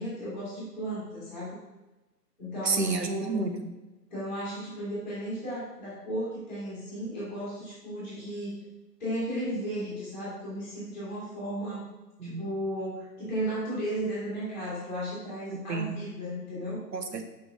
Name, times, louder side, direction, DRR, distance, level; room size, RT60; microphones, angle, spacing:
voice 1, 0.0-1.6 2.4-3.4 4.1-8.6 9.0-11.8 12.2-16.8, right 1 dB, ahead, -16 dB, 2.3 m, -34 dB
voice 2, 2.6-3.7 12.2-12.4 15.5-16.0 16.9-17.2, right 3 dB, 80° right, 6 dB, 1.4 m, -30 dB
6.3 x 5.3 x 6.4 m, 1.1 s
hypercardioid pair, 165°, 49 cm